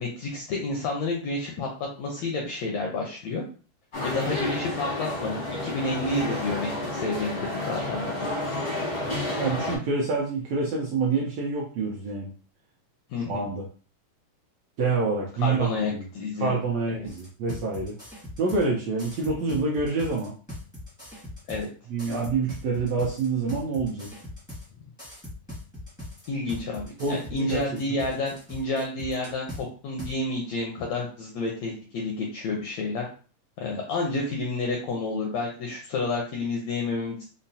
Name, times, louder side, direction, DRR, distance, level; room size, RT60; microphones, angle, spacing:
voice 1, 0.0-3.4 4.0-8.2 13.1-13.4 15.4-16.6 16.9-17.1 21.5-21.7 26.3-29.5 29.8-33.1 33.6-37.2, left 3 dB, 80° left, -1 dB, 1.5 m, -30 dB
sound 1, 3.9-9.8, left 2 dB, 65° left, 0.7 m, -30 dB
voice 2, 9.4-12.3 13.3-13.6 14.8-16.0 16.4-17.9 18.4-20.3 21.9-24.1 27.0-27.6, right 4 dB, 80° right, -3 dB, 1.5 m, -27 dB
sound 2, 17.0-18.7 19.0-21.7 22.0-24.7 25.0-29.6 30.0-30.1, left 1 dB, 5° left, 0.5 m, -40 dB
5.5 x 2.0 x 2.6 m, 0.39 s
omnidirectional pair, 3.8 m